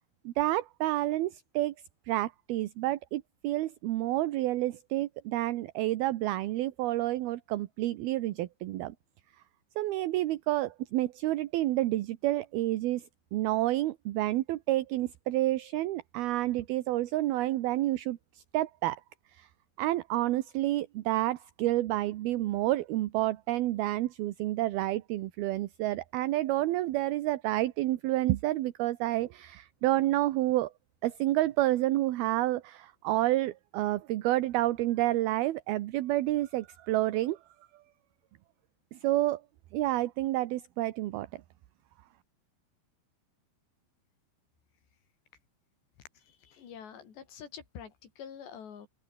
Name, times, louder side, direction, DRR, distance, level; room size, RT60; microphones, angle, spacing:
voice 1, 0.3-1.7 2.1-8.9 9.8-13.0 13.3-19.0 19.3-19.5 19.8-30.7 31.0-37.4 38.9-39.4 39.7-41.3, right 16 dB, 70° right, 2.7 m, -29 dB
voice 2, 46.2-48.9, left 8 dB, 75° left, 6.2 m, -47 dB
omnidirectional pair, 5.0 m